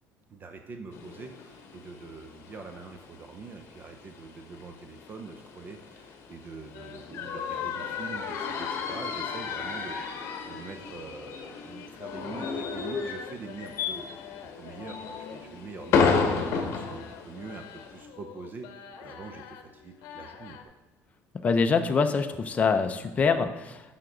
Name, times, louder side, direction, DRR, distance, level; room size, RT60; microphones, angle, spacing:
voice 1, 0.3-20.6, right 4 dB, 35° right, 6 dB, 0.6 m, -44 dB
sound 1, 0.9-18.0, left 5 dB, 50° left, 1.2 m, -33 dB
sound 2, 6.7-20.6, left 8 dB, 80° left, 0.8 m, -46 dB
voice 2, 21.3-24.0, left 5 dB, 25° left, 7 dB, 0.5 m, -25 dB
11.0 x 5.8 x 3.8 m, 1.1 s
cardioid pair, 145°, 6 cm